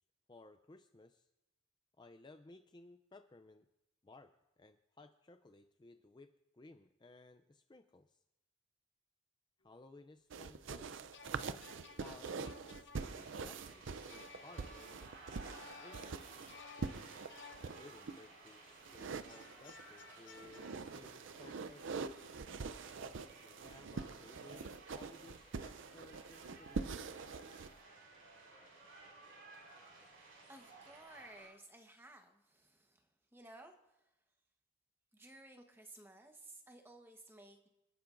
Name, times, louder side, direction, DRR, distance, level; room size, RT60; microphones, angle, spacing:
voice 1, 0.3-1.3 2.0-3.7 4.0-8.2 9.6-10.9 12.0-15.0 15.8-16.4 17.7-22.4 23.4-27.0, left 2 dB, 20° left, 8 dB, 0.4 m, -59 dB
sound 1, 10.3-18.2 18.8-19.9 20.3-27.7, right 4 dB, 65° right, 0.5 m, -45 dB
sound 2, 10.9-18.4 19.3-20.8, left 5 dB, 60° left, 0.7 m, -58 dB
sound 3, 12.9-31.5, right 3 dB, 85° right, 6.2 m, -57 dB
voice 2, 30.0-34.1 35.1-37.7, right 1 dB, 10° right, 4 dB, 1.1 m, -57 dB
28.5 x 10.0 x 2.6 m, 0.97 s
head